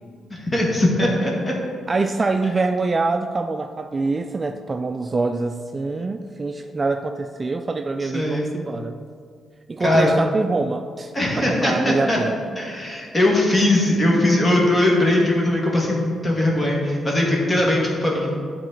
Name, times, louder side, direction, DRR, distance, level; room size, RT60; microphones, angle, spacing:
voice 1, 0.3-1.5 8.0-8.5 9.8-10.1 11.1-12.2 12.6-18.3, left 1 dB, 20° left, -2 dB, 1.8 m, -20 dB
voice 2, 1.9-9.0 9.7-12.4, right 3 dB, 30° right, 7 dB, 0.3 m, -25 dB
11.5 x 4.1 x 3.8 m, 2.2 s
cardioid pair, 95°, 0 cm